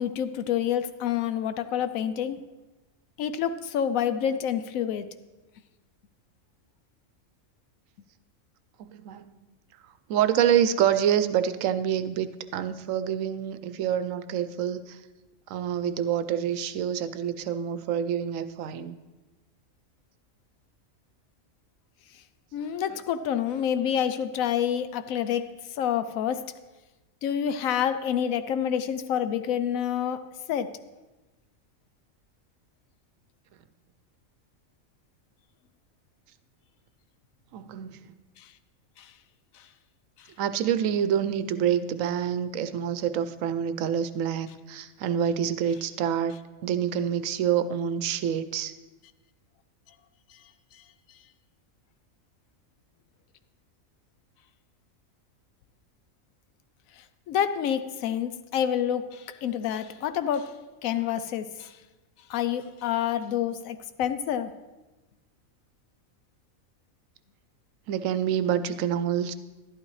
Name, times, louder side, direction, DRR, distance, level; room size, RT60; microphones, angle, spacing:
voice 1, 0.0-2.4 3.2-5.1 22.5-26.5 27.2-30.8 38.4-38.5 39.0-39.1 57.3-61.7 62.3-64.5, left 9 dB, 90° left, 12 dB, 1.0 m, -28 dB
voice 2, 8.8-9.3 10.1-15.0 15.5-19.0 37.5-38.1 40.4-48.7 67.9-69.3, right 9 dB, 80° right, 12 dB, 1.0 m, -27 dB
12.0 x 11.5 x 3.2 m, 1.1 s
omnidirectional pair, 1.4 m